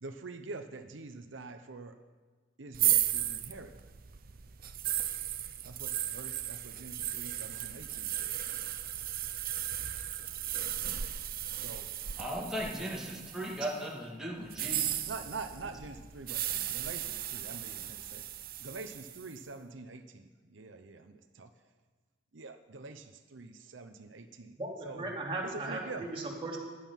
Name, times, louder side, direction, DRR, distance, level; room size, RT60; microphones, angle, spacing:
voice 1, 0.0-2.0 2.6-3.8 5.6-8.4 11.5-11.9 15.1-18.2 18.6-21.5 22.3-24.6 24.8-25.1 25.5-26.1, right 3 dB, 85° right, 7 dB, 0.8 m, -45 dB
sound 1, 2.7-13.7 14.4-19.3, right 12 dB, 55° right, 0.8 m, -35 dB
voice 2, 12.2-14.9, equal, 5° right, -4 dB, 2.4 m, -37 dB
voice 3, 24.6-26.6, right 2 dB, 30° right, -2 dB, 2.9 m, -37 dB
16.5 x 11.0 x 5.8 m, 1.4 s
head